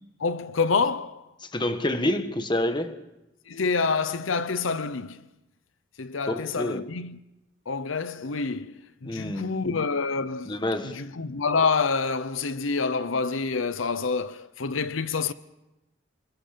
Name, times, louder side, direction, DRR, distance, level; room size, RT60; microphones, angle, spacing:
voice 1, 0.2-1.3 3.5-5.2 6.0-7.2 7.7-8.7 9.0-15.3, left 4 dB, 85° left, 0.8 m, -27 dB
voice 2, 1.4-3.0 6.3-6.9 9.0-9.6 10.4-11.0, left 1 dB, 25° left, 1.3 m, -28 dB
28.0 x 21.5 x 5.1 m
head